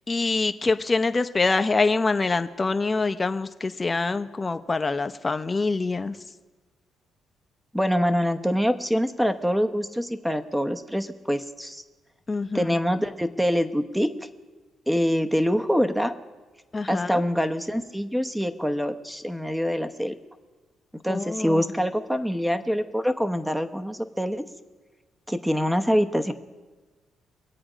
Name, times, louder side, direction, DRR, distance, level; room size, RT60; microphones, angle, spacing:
voice 1, 0.1-6.2 12.3-12.7 16.7-17.2 21.1-21.7, left 3 dB, 25° left, 10 dB, 0.7 m, -25 dB
voice 2, 7.7-11.8 12.5-14.1 14.9-16.1 16.9-20.2 21.0-24.4 25.3-26.3, equal, 5° right, 8 dB, 0.9 m, -25 dB
24.0 x 8.6 x 5.0 m, 1.3 s
cardioid pair, 90°, 0 cm